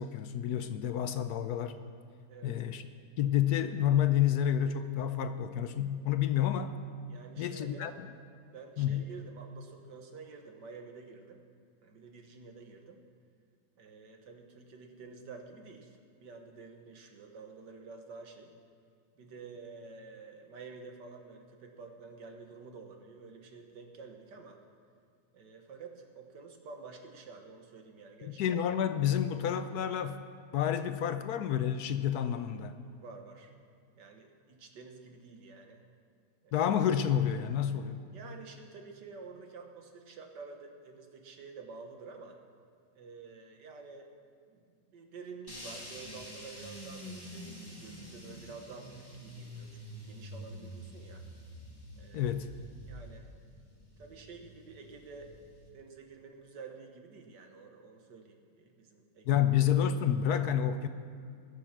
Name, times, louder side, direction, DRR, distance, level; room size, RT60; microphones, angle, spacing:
voice 1, 0.0-1.7 2.4-2.8 3.2-6.7 7.4-7.9 8.8-9.0 28.2-30.2 30.5-32.7 36.5-38.0 52.1-52.5 59.3-60.9, left 9 dB, 70° left, 10 dB, 1.1 m, -29 dB
voice 2, 7.1-8.0 8.5-11.4 11.8-13.0 13.8-18.5 19.2-24.6 25.3-28.4 33.0-33.5 34.0-35.8 36.4-36.6 38.1-42.4 42.9-44.1 44.5-49.7 50.0-51.2 52.0-52.3 52.9-53.3 54.0-55.3 55.7-59.4, right 4 dB, 75° right, 4 dB, 1.8 m, -49 dB
sound 1, 45.5-55.7, equal, 15° left, 2.0 m, -47 dB
20.0 x 6.9 x 6.0 m, 2.3 s
omnidirectional pair, 1.9 m